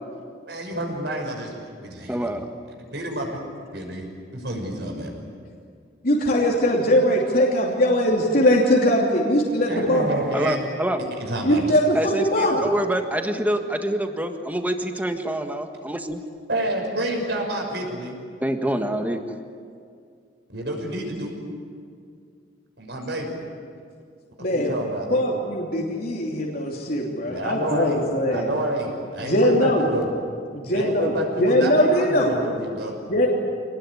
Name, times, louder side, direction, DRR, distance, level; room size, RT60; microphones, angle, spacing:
voice 1, 0.5-2.2 2.9-3.3 3.7-4.1 4.3-5.1 9.7-10.6 11.0-11.6 16.5-18.2 20.5-21.4 22.8-23.4 24.5-25.2 27.3-28.0 28.3-30.1 30.7-32.9, right 1 dB, 65° right, 2 dB, 6.3 m, -28 dB
voice 2, 2.1-2.5 10.3-11.0 11.9-16.2 18.4-19.2, right 1 dB, 10° right, 5 dB, 1.6 m, -26 dB
voice 3, 6.0-10.1 11.4-12.6 24.4-24.7 25.1-28.5 29.2-29.9 30.5-31.1 31.4-32.3 33.1-33.3, left 1 dB, 50° left, -2 dB, 3.0 m, -21 dB
27.0 x 19.5 x 9.8 m, 2.3 s
head